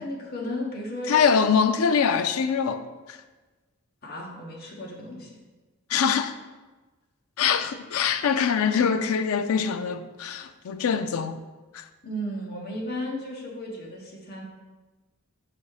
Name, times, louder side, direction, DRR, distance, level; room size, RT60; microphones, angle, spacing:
voice 1, 0.0-1.1 4.0-5.4 12.0-14.4, left 1 dB, 45° left, 1.2 m, -34 dB
voice 2, 1.1-3.2 5.9-6.3 7.4-11.4 11.7-11.8, left 6 dB, 80° left, 0.4 m, -24 dB
5.9 x 4.1 x 4.8 m
head